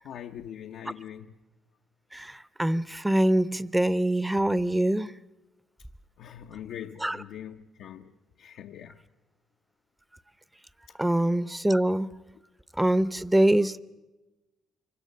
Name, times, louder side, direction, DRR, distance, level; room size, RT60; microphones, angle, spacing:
voice 1, 0.0-1.3 6.2-8.1 8.4-9.0, left 10 dB, 80° left, 0.8 m, -42 dB
voice 2, 2.1-5.1 7.0-7.2 11.0-12.1 12.8-13.8, right 1 dB, 10° right, 0.7 m, -24 dB
25.5 x 24.0 x 6.6 m
cardioid pair, 90°, 0 cm